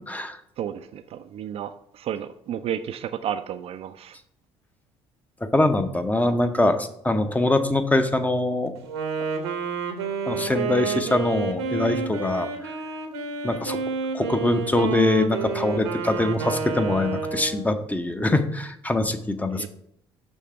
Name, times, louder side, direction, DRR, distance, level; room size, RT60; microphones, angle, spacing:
voice 1, 0.1-0.4 5.4-8.7 10.3-12.5 13.4-13.8 14.1-19.7, left 2 dB, 10° left, 7 dB, 0.7 m, -23 dB
voice 2, 0.6-4.2 19.5-19.7, right 9 dB, 45° right, 10 dB, 0.4 m, -32 dB
Wind instrument woodwind instrument, 8.8-17.8, right 3 dB, 80° right, 0.8 m, -29 dB
6.3 x 3.2 x 5.7 m, 0.71 s
figure-of-eight pair, 55°, 13 cm